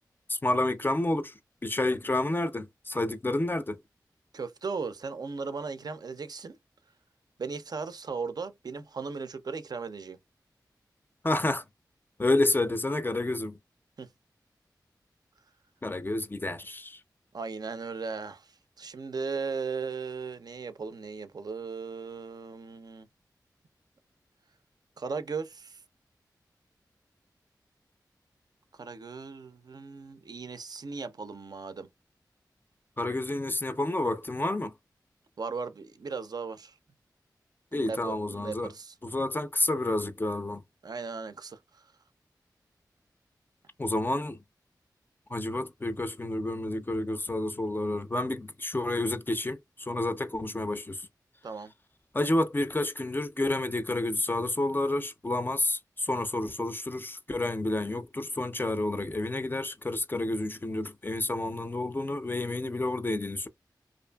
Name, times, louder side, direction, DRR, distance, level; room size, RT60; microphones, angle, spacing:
voice 1, 0.3-1.3 1.6-3.8 11.2-11.6 12.2-13.6 15.8-17.0 33.0-34.7 37.7-38.7 39.0-40.6 43.8-44.4 45.3-51.0 52.1-63.5, left 2 dB, 30° left, 0.4 m, -29 dB
voice 2, 4.3-6.6 7.4-10.2 14.0-14.1 17.3-18.5 18.8-23.1 25.0-25.8 28.8-31.9 35.4-36.7 37.7-38.9 40.8-41.8 51.4-51.7, right 4 dB, 60° right, 0.4 m, -37 dB
2.5 x 2.5 x 2.2 m
cardioid pair, 45°, 7 cm